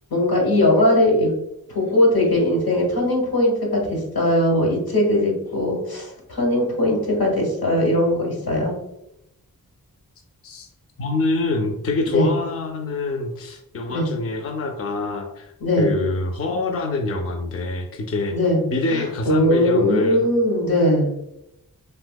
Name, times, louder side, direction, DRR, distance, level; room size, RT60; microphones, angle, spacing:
voice 1, 0.1-1.3 1.7-8.7 12.1-12.3 13.9-14.1 15.6-15.9 18.3-18.6 18.9-21.1, left 1 dB, 80° left, -1 dB, 1.2 m, -20 dB
voice 2, 11.0-18.3 18.7-20.3, left 3 dB, 40° left, 3 dB, 0.4 m, -25 dB
3.5 x 2.8 x 2.2 m, 0.83 s
cardioid pair, 55°, 36 cm